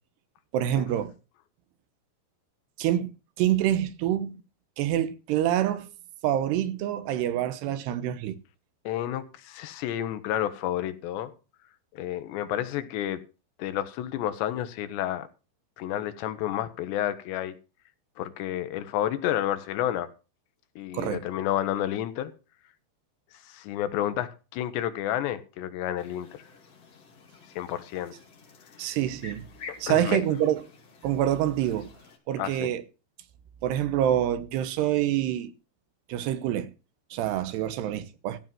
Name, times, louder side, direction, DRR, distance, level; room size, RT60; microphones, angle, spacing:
voice 1, 0.5-1.1 2.8-3.1 3.4-4.4 4.8-5.9 6.2-8.4 20.9-21.2 28.8-29.5 29.8-30.6 31.0-31.9 32.3-32.8 33.6-35.5 36.1-36.7 37.1-38.4, right 11 dB, 75° right, 3.1 m, -26 dB
voice 2, 8.8-11.3 11.9-13.2 13.6-15.3 15.8-17.5 18.2-20.1 20.8-22.3 23.4-26.4 27.6-28.1 29.9-30.3 32.4-32.7, left 12 dB, 80° left, 3.2 m, -30 dB
sound 1, 26.0-32.2, left 4 dB, 40° left, 3.0 m, -49 dB
15.0 x 5.5 x 7.6 m
omnidirectional pair, 5.0 m